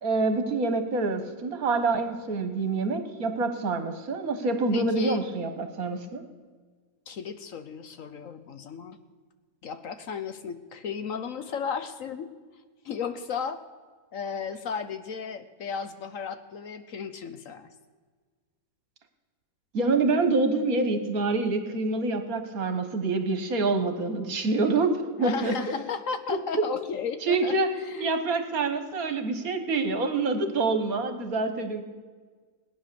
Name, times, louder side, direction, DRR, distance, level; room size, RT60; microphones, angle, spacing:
voice 1, 0.0-6.2 19.7-25.5 26.3-26.4 27.2-27.7 28.0-31.8, right 3 dB, 60° right, 8 dB, 1.7 m, -26 dB
voice 2, 4.7-5.2 7.1-9.0 9.6-12.3 12.8-13.6 14.1-17.7 25.2-27.5 27.9-28.1, left 6 dB, 60° left, 10 dB, 1.1 m, -34 dB
18.0 x 10.0 x 6.9 m, 1.5 s
omnidirectional pair, 1.7 m